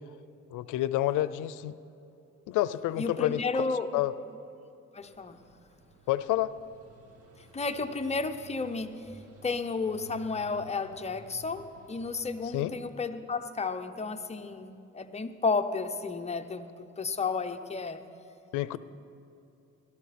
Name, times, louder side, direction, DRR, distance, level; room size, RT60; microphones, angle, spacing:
voice 1, 0.5-1.8 2.5-3.6 3.9-4.1 6.1-6.5 12.5-12.7 18.5-18.8, left 14 dB, 90° left, 16 dB, 0.5 m, -29 dB
voice 2, 3.0-3.9 4.9-5.4 7.5-8.9 9.4-18.0, left 4 dB, 20° left, 6 dB, 0.8 m, -32 dB
sound 1, 5.0-12.9, right 3 dB, 50° right, 2.0 m, -54 dB
17.0 x 12.5 x 4.2 m, 2.7 s
cardioid pair, 90°, 30 cm